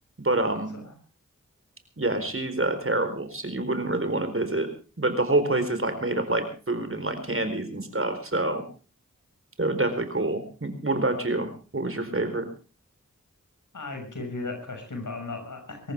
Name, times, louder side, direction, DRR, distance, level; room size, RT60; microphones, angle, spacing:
voice 1, 0.2-0.7 2.0-4.7 5.0-8.6 9.6-12.5, right 2 dB, 45° right, 9 dB, 4.1 m, -27 dB
voice 2, 13.7-15.9, left 3 dB, 75° left, 4 dB, 6.3 m, -36 dB
24.5 x 14.5 x 3.5 m, 0.35 s
cardioid pair, 45°, 31 cm